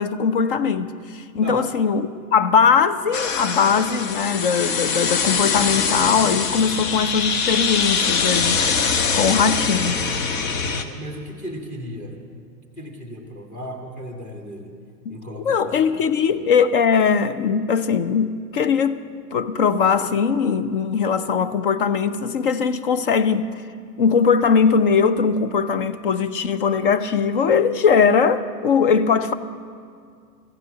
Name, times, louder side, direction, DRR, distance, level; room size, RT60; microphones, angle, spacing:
voice 1, 0.0-8.6 9.1-10.0 15.1-15.2 15.4-23.5 24.0-29.3, left 6 dB, 35° left, 13 dB, 0.4 m, -20 dB
sound 1, 3.1-10.8, left 5 dB, 50° left, 1.1 m, -23 dB
voice 2, 10.8-12.2 12.8-14.8 15.1-16.4, equal, 15° left, 1 dB, 1.6 m, -36 dB
14.5 x 9.3 x 7.7 m, 2.2 s
hypercardioid pair, 130°, 49 cm